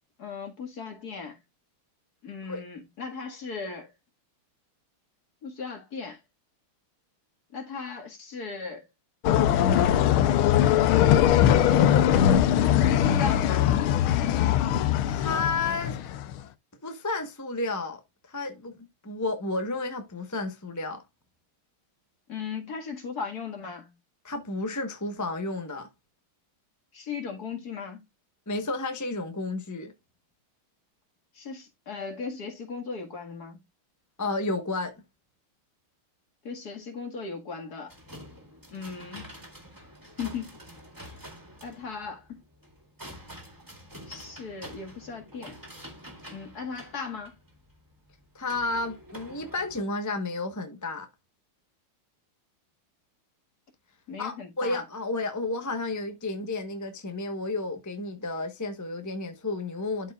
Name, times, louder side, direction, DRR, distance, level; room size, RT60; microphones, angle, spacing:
voice 1, 0.2-1.4 2.2-3.9 5.4-6.2 7.5-8.9 9.6-10.2 12.7-13.7 22.3-23.9 26.9-28.0 31.4-33.6 36.4-37.9 38.7-39.3 40.2-40.5 41.6-42.4 44.1-45.6 46.3-47.3 54.1-54.8, left 5 dB, 45° left, 2.3 m, -37 dB
sound 1, 9.2-16.3, left 10 dB, 80° left, 1.5 m, -21 dB
voice 2, 15.0-16.0 16.8-18.0 18.3-18.8 19.0-21.0 24.2-25.9 28.5-29.9 34.2-35.0 48.3-51.1 54.2-60.1, left 3 dB, 15° left, 0.6 m, -31 dB
sound 2, 37.9-49.8, equal, 10° right, 1.9 m, -47 dB
12.0 x 4.8 x 2.4 m
omnidirectional pair, 2.4 m